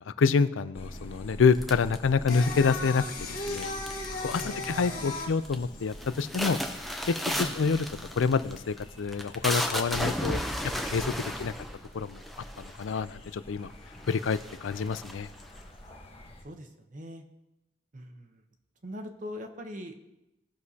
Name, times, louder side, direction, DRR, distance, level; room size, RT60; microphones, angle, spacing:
voice 1, 0.2-3.7 4.2-6.6 7.0-7.9 8.2-10.4 10.9-11.5 11.9-12.2 12.6-13.7 14.1-15.3, left 5 dB, 90° left, 15 dB, 0.4 m, -27 dB
sound 1, 0.7-16.4, equal, 30° left, 1.1 m, -47 dB
sound 2, 1.6-2.7 3.5-4.1 4.3-4.8 5.2-5.6 5.9-13.0 13.6-13.7 14.0-15.6, equal, ahead, 0.7 m, -34 dB
Singing, 2.3-7.2, left 3 dB, 45° left, 1.8 m, -37 dB
voice 2, 4.3-5.1 7.3-7.6 11.2-11.4 16.4-17.2 17.9-18.4 18.8-19.9, equal, 40° right, 5 dB, 0.9 m, -42 dB
17.5 x 6.3 x 2.8 m, 0.93 s
head